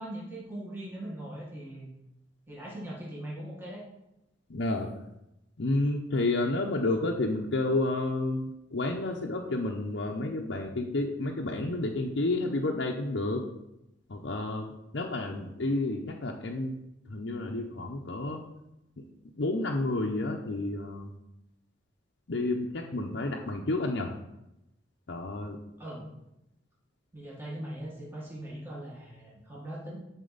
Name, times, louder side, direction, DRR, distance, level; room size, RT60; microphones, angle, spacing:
voice 1, 0.0-1.9 2.5-3.8 25.8-26.1 27.1-30.0, right 1 dB, 10° right, -6 dB, 1.5 m, -40 dB
voice 2, 4.5-4.9 5.6-13.4 14.1-16.7 17.1-18.4 19.0-19.1 19.4-21.1 22.3-24.1 25.1-25.6, left 2 dB, 65° left, 0 dB, 0.7 m, -30 dB
9.9 x 4.4 x 4.0 m, 0.89 s
head